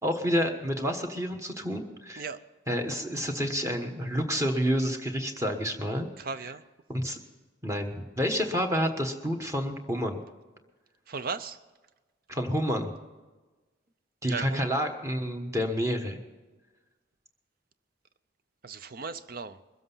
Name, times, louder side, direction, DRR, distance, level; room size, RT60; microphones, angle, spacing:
voice 1, 0.0-2.2 2.7-6.1 6.9-7.2 7.6-10.2 12.3-12.9 14.2-16.2, equal, 15° right, 4 dB, 1.2 m, -29 dB
voice 2, 6.2-6.6 11.1-11.6 14.3-14.7 18.6-19.6, right 5 dB, 45° right, 12 dB, 0.6 m, -36 dB
22.0 x 7.8 x 5.6 m, 1.2 s
head